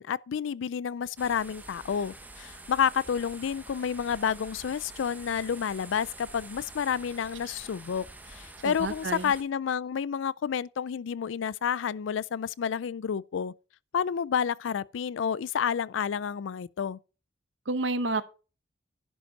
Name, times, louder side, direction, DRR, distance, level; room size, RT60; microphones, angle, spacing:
voice 1, 0.0-13.5 13.9-17.0, left 7 dB, 90° left, 0.4 m, -30 dB
sound 1, 1.2-9.4, right 2 dB, 10° right, 0.9 m, -47 dB
voice 2, 8.6-9.3 17.7-18.2, right 2 dB, 80° right, 0.9 m, -29 dB
11.0 x 5.3 x 5.3 m
head